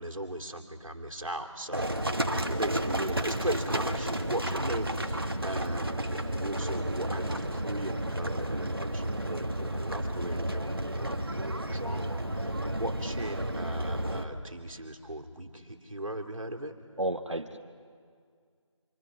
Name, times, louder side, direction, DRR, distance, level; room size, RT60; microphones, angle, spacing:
voice 1, 0.0-16.7, right 1 dB, 85° right, 3 dB, 2.6 m, -38 dB
Livestock farm animals working animals, 1.7-14.2, right 1 dB, 45° right, 1.5 m, -32 dB
voice 2, 17.0-17.6, right 1 dB, 65° right, 5 dB, 1.3 m, -33 dB
27.0 x 24.0 x 6.1 m, 2.1 s
figure-of-eight pair, 175°, 16 cm